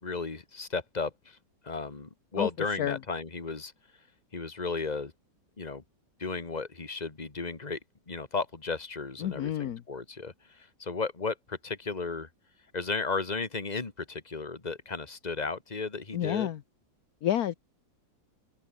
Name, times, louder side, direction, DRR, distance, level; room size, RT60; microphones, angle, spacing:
voice 1, 0.0-1.4 1.6-3.7 4.3-5.1 5.6-5.8 6.2-7.8 8.1-12.3 12.7-16.5, left 4 dB, 20° left, 2.0 m, -34 dB
voice 2, 9.2-9.8 16.1-16.6 17.2-17.6, left 11 dB, 60° left, 1.2 m, -29 dB
open air
omnidirectional pair, 2.0 m